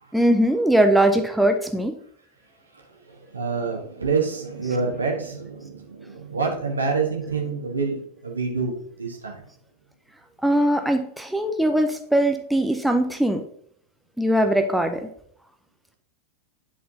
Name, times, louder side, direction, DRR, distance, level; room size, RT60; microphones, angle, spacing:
voice 1, 0.1-2.0 4.6-4.8 10.4-13.4 14.2-15.1, right 1 dB, ahead, 6 dB, 0.5 m, -21 dB
voice 2, 2.7-9.4, right 4 dB, 75° right, 1 dB, 1.5 m, -27 dB
10.0 x 4.3 x 2.8 m, 0.64 s
figure-of-eight pair, 90°, 0 cm